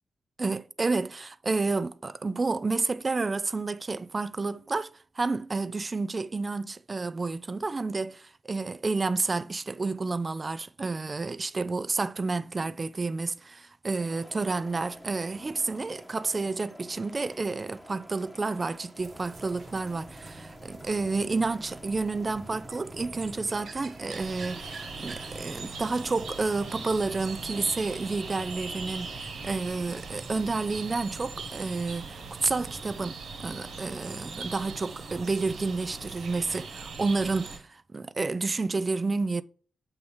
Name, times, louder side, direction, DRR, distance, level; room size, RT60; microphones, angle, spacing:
voice 1, 0.4-39.4, right 3 dB, 30° right, 0.4 m, -30 dB
sound 1, 13.9-29.2, equal, 10° left, 1.0 m, -49 dB
sound 2, 19.0-33.0, right 3 dB, 60° right, 1.3 m, -48 dB
sound 3, 24.1-37.6, right 4 dB, 85° right, 1.6 m, -40 dB
7.8 x 2.9 x 5.4 m
cardioid pair, 100°, 0 cm